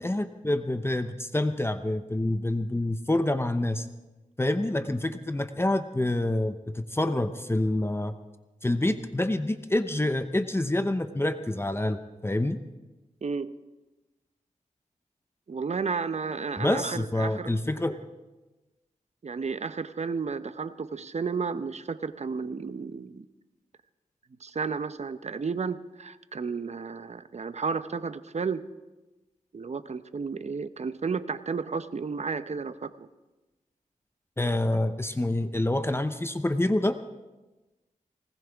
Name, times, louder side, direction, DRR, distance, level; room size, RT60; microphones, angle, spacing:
voice 1, 0.0-3.9 4.4-8.1 8.6-12.6 16.6-17.9 34.4-37.0, left 1 dB, 15° left, 9 dB, 0.8 m, -27 dB
voice 2, 13.2-13.5 15.5-17.5 19.2-23.2 24.4-28.6 29.5-33.1, right 5 dB, 55° right, 12 dB, 0.8 m, -32 dB
19.5 x 19.0 x 3.5 m, 1.1 s
cardioid pair, 60°, 14 cm